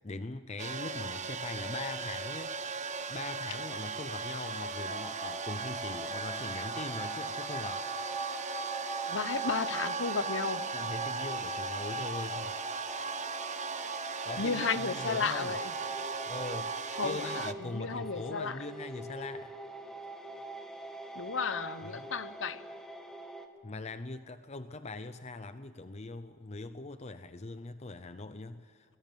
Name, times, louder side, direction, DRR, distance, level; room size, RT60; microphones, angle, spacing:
voice 1, 0.0-2.5 3.1-7.9 10.7-12.8 14.2-15.6 16.3-19.5 21.8-22.1 23.6-29.0, left 3 dB, 35° left, 11 dB, 0.7 m, -41 dB
sound 1, 0.6-17.5, right 4 dB, 35° right, 1.0 m, -37 dB
sound 2, 4.9-23.5, right 2 dB, 5° left, 2.0 m, -43 dB
voice 2, 9.1-10.6 14.4-15.7 17.0-18.6 21.1-22.6, left 5 dB, 65° left, 14 dB, 0.9 m, -33 dB
22.5 x 22.0 x 7.4 m, 2.1 s
head